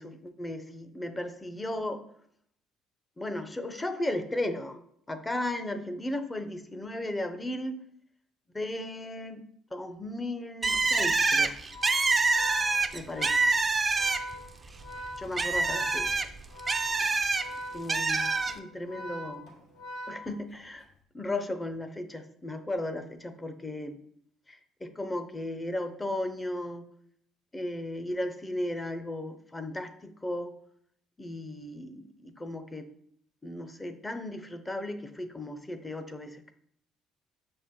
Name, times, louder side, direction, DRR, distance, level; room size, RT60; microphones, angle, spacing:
voice 1, 0.0-2.0 3.2-4.8 5.1-7.8 8.5-9.4 9.7-11.5 12.9-13.4 15.2-16.3 17.7-19.6 20.1-20.9 21.1-24.0 24.5-26.9 27.5-30.6 31.2-32.9 33.4-36.4, left 1 dB, 15° left, 9 dB, 0.6 m, -35 dB
Bird, 10.6-14.5 14.8-17.4 17.9-18.5, right 3 dB, 25° right, 0.4 m, -26 dB
Organ, 11.6-20.8, equal, 75° left, 1.2 m, -42 dB
6.8 x 4.3 x 3.7 m, 0.69 s
cardioid pair, 100°, 0 cm